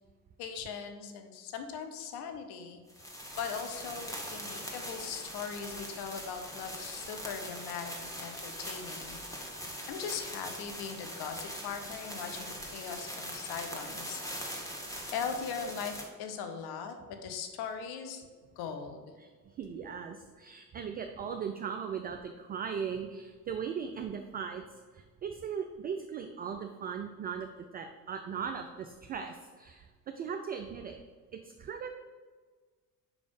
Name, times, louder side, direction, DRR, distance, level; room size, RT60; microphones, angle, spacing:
voice 1, 0.4-2.8 3.3-9.6 9.9-14.8 15.1-18.3 18.6-19.1, left 6 dB, 50° left, 6 dB, 0.9 m, -40 dB
sound 1, 2.9-16.0, equal, 5° left, 1.3 m, -42 dB
voice 2, 19.6-24.6 24.9-29.9 30.2-31.0 31.3-31.9, right 7 dB, 20° right, 6 dB, 0.3 m, -38 dB
5.2 x 5.0 x 5.2 m, 1.5 s
figure-of-eight pair, 50°, 48 cm